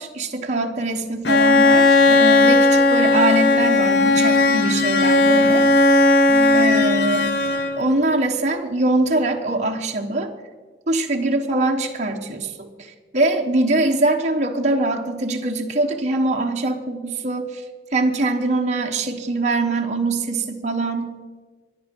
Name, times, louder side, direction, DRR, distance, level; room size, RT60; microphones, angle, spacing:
voice 1, 0.0-5.7 6.5-7.3 7.8-10.3 10.9-17.6 17.9-21.2, right 2 dB, 40° right, 2 dB, 1.1 m, -23 dB
Bowed string instrument, 1.2-8.0, left 2 dB, 65° left, 0.9 m, -16 dB
sound 1, 2.1-2.8 3.1-3.6 4.1-4.7 5.2-5.7 6.3-6.6, left 1 dB, 10° right, 1.6 m, -32 dB
23.0 x 11.0 x 5.3 m, 1.4 s
head